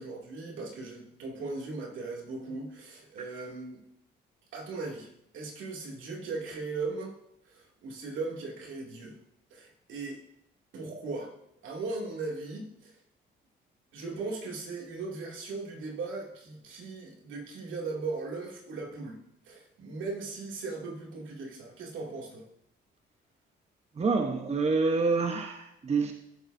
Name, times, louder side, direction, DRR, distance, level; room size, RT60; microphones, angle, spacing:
voice 1, 0.0-3.8 4.5-5.1 5.3-7.1 7.4-9.2 9.5-10.2 10.7-11.3 11.6-13.0 13.9-19.2 19.4-22.5, right 3 dB, 80° right, -1 dB, 2.6 m, -38 dB
voice 2, 23.9-26.1, right 4 dB, 35° right, 4 dB, 1.0 m, -27 dB
15.0 x 7.2 x 2.7 m, 0.75 s
cardioid pair, 90°, 20 cm